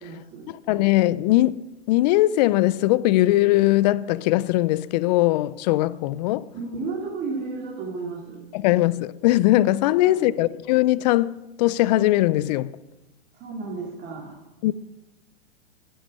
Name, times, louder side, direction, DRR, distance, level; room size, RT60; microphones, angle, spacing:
voice 1, 0.0-0.5 6.5-8.4 10.0-10.3 13.3-14.4, right 4 dB, 30° right, 2.5 m, -33 dB
voice 2, 0.7-6.5 8.5-12.8 14.6-14.7, left 16 dB, 40° left, 0.4 m, -20 dB
11.0 x 10.0 x 6.4 m
hypercardioid pair, 125°, 34 cm